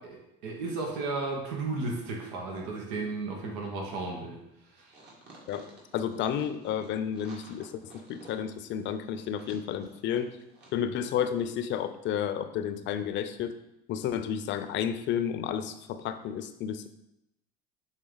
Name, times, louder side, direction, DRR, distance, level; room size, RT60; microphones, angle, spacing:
voice 1, 0.4-4.4 4.7-5.0, right 3 dB, 90° right, 0 dB, 1.2 m, -34 dB
sound 1, 4.9-10.8 11.0-11.1, right 2 dB, 55° right, 2.3 m, -53 dB
voice 2, 5.9-7.8 8.1-10.3 10.7-13.5 13.9-16.9, left 9 dB, 60° left, 10 dB, 0.6 m, -31 dB
6.3 x 3.8 x 3.9 m, 0.85 s
supercardioid pair, 85°, 21 cm